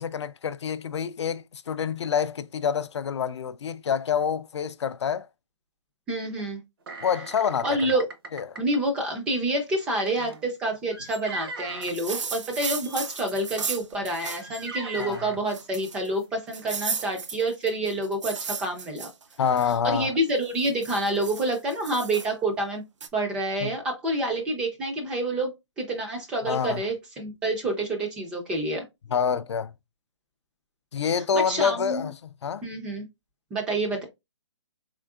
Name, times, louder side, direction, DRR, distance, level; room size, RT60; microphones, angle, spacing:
voice 1, 0.0-5.3 7.0-7.8 8.3-8.6 15.0-15.2 19.4-20.1 23.6-23.7 26.4-26.8 29.1-29.7 30.9-32.1 32.4-32.6, left 7 dB, 70° left, 0.4 m, -27 dB
voice 2, 6.1-6.6 7.6-8.1 8.6-19.1 19.8-22.8 23.1-28.8 31.3-32.1 32.6-33.1 33.5-34.0, right 1 dB, 5° right, 0.3 m, -28 dB
sound 1, 6.9-8.8 10.1-11.9 12.8-13.0 13.5-13.7 14.4-15.4 16.2-16.3 16.6-16.8, right 2 dB, 55° right, 0.8 m, -39 dB
sound 2, 11.8-14.7 15.0-15.1 15.5-16.1 16.5-19.7 20.3-22.3 23.0-23.1, right 5 dB, 85° right, 0.6 m, -35 dB
3.7 x 3.3 x 2.3 m
hypercardioid pair, 160°, 15 cm